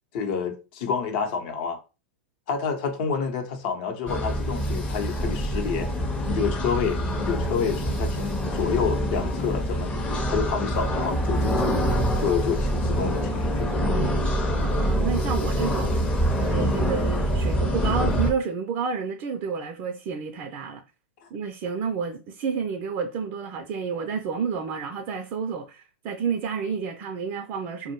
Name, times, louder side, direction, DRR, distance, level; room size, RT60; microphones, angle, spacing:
voice 1, 0.1-1.8 2.5-5.9 6.2-9.9 10.3-11.7 12.2-13.7 14.0-14.2, left 6 dB, 55° left, 0.7 m, -28 dB
sound 1, 4.1-18.3, equal, 20° left, 0.6 m, -25 dB
voice 2, 14.6-16.1 16.4-20.8 21.3-27.9, right 6 dB, 45° right, 0.4 m, -30 dB
2.2 x 2.0 x 3.0 m
hypercardioid pair, 105°, 6 cm